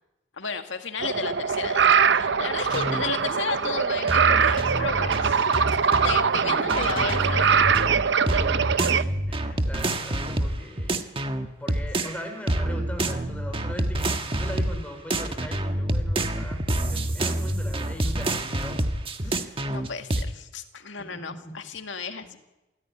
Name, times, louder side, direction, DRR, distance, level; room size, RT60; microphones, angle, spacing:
voice 1, 0.4-1.9 2.1-5.4 6.0-7.6 19.7-22.4, left 5 dB, 80° left, 6 dB, 2.1 m, -33 dB
sound 1, 1.0-9.0, right 6 dB, 65° right, 0.7 m, -22 dB
sound 2, 2.7-3.1 4.1-6.2 6.7-12.2 12.5-14.8 15.1-20.2, right 1 dB, 30° right, 1.5 m, -27 dB
voice 2, 6.4-6.8 8.2-11.1 11.6-18.9 19.2-19.6 21.0-21.6 22.2-22.4, equal, 10° left, 3 dB, 4.8 m, -40 dB
27.5 x 15.0 x 9.8 m, 1.0 s
head